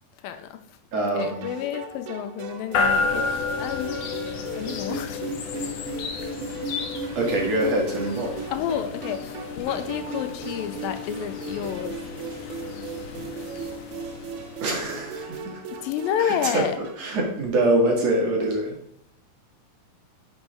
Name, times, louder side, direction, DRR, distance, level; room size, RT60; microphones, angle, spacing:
voice 1, 0.2-0.6 1.0-4.0 4.5-5.2 5.6-5.7 8.5-12.0 15.7-16.8, left 9 dB, 90° left, 9 dB, 2.5 m, -30 dB
voice 2, 0.9-1.5 7.2-8.3 14.6-15.6 16.2-16.7 17.0-18.8, right 1 dB, 55° right, -1 dB, 2.4 m, -24 dB
sound 1, 1.2-17.1, right 4 dB, 90° right, 2.6 m, -37 dB
sound 2, 2.7-15.7, left 4 dB, 65° left, 1.8 m, -32 dB
11.0 x 6.2 x 3.5 m, 0.72 s
omnidirectional pair, 4.1 m